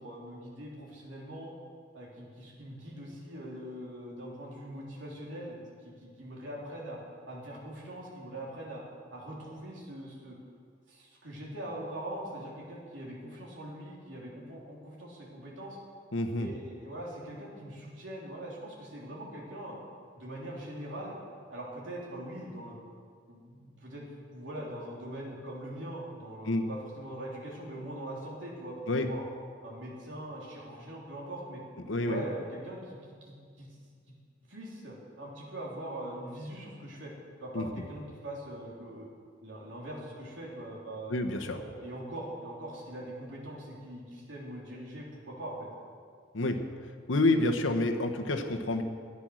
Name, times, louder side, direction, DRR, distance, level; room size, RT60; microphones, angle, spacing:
voice 1, 0.0-1.5 1.9-7.0 7.3-8.8 9.1-10.4 10.9-15.8 16.4-19.8 20.2-21.2 21.5-22.7 23.3-24.1 24.3-28.8 29.0-29.2 29.6-31.6 32.1-33.7 34.5-37.1 37.4-39.1 39.4-41.1 41.5-45.7, right 1 dB, 75° right, -4 dB, 3.3 m, -42 dB
voice 2, 16.1-16.5 26.4-26.6 28.9-29.1 31.9-32.2 37.5-37.7 41.1-41.6 46.3-46.6 47.1-48.8, left 2 dB, 85° left, 6 dB, 1.1 m, -28 dB
13.0 x 9.7 x 6.3 m, 2.1 s
head